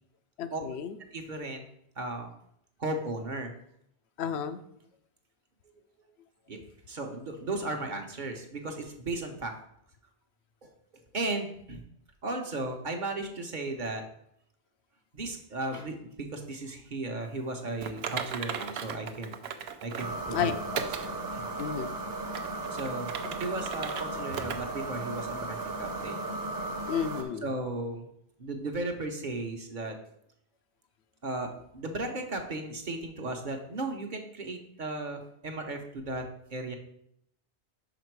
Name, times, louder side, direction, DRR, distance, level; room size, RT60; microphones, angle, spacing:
voice 1, 0.4-1.0 4.2-4.6 20.3-20.8 21.6-21.9 26.9-27.5, left 8 dB, 85° left, 10 dB, 0.9 m, -32 dB
voice 2, 1.1-1.6 2.0-2.3 2.8-3.5 6.5-9.5 10.6-10.7 11.1-11.8 12.2-14.0 15.1-19.3 19.8-21.5 22.7-26.2 27.4-28.1 28.4-30.0 31.2-36.8, right 2 dB, 50° right, 4 dB, 1.0 m, -36 dB
Typing, 17.8-20.2 20.7-21.1 21.6-21.7 22.2-24.0 24.3-24.6 24.9-25.0 25.6-25.7, right 7 dB, 75° right, 0.8 m, -37 dB
sound 1, 20.0-27.2, right 2 dB, 20° right, 0.7 m, -36 dB
5.8 x 5.1 x 4.6 m, 0.73 s
omnidirectional pair, 1.1 m